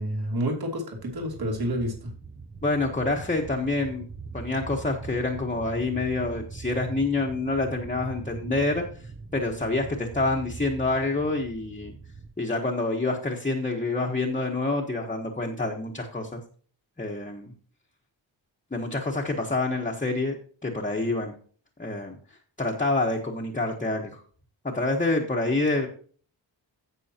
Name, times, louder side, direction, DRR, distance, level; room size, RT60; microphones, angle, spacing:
voice 1, 0.0-2.1, equal, 55° right, 1 dB, 2.9 m, -29 dB
sound 1, 1.0-12.3, right 4 dB, 20° right, 0.6 m, -41 dB
voice 2, 2.6-4.0 4.3-8.8 9.3-11.9 12.4-16.4 17.0-17.5 18.7-20.4 20.6-21.3 21.8-22.2 22.6-24.2 24.6-25.9, left 2 dB, 15° left, -1 dB, 1.2 m, -27 dB
15.5 x 6.2 x 2.8 m, 0.44 s
wide cardioid pair, 180°, 45 cm